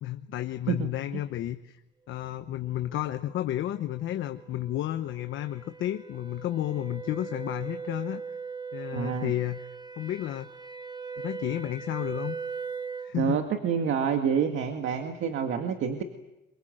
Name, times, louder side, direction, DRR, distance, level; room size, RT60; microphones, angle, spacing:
voice 1, 0.0-1.8 2.1-8.2 8.7-9.7 10.0-10.5 11.2-12.4 13.0-13.5, left 13 dB, 80° left, 7 dB, 1.0 m, -32 dB
sound 1, 3.3-13.2, right 5 dB, 20° right, 1.0 m, -40 dB
voice 2, 8.9-9.3 13.1-16.0, right 7 dB, 75° right, 5 dB, 1.9 m, -27 dB
26.5 x 24.0 x 7.8 m, 0.96 s
cardioid pair, 90°, 20 cm